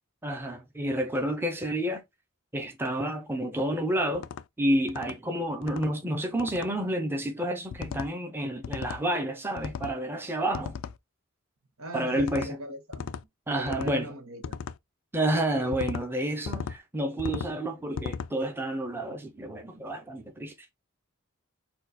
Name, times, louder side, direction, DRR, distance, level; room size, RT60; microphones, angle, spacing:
voice 1, 0.2-2.0 2.5-4.3 4.6-10.7 11.9-12.6 13.5-14.1 15.1-20.5, right 1 dB, 10° right, 0.7 m, -29 dB
sound 1, 4.1-4.4 4.9-5.2 5.6-5.9 6.4-6.7 7.7-8.1 8.6-9.0 9.6-10.0 10.5-11.0 12.2-12.5 12.9-13.2 13.7-14.0 14.4-14.8 15.7-16.0 16.5-16.8 17.2-17.5 18.0-18.3, left 6 dB, 65° left, 0.3 m, -36 dB
voice 2, 11.8-13.1 13.5-14.6, equal, 75° right, 1.5 m, -40 dB
4.4 x 2.4 x 4.1 m
head